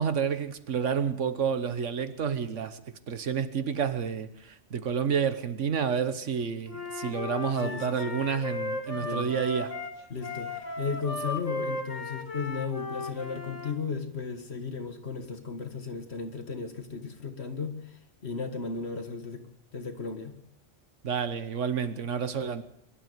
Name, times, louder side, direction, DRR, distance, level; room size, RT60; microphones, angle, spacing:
voice 1, 0.0-9.7 21.0-22.6, right 7 dB, 85° right, 1.5 m, -29 dB
Wind instrument woodwind instrument, 6.7-13.7, left 3 dB, 85° left, 2.5 m, -36 dB
voice 2, 7.6-8.2 8.9-9.3 10.1-19.4 19.7-20.4, left 5 dB, 60° left, 2.0 m, -35 dB
23.0 x 12.0 x 9.4 m
omnidirectional pair, 1.2 m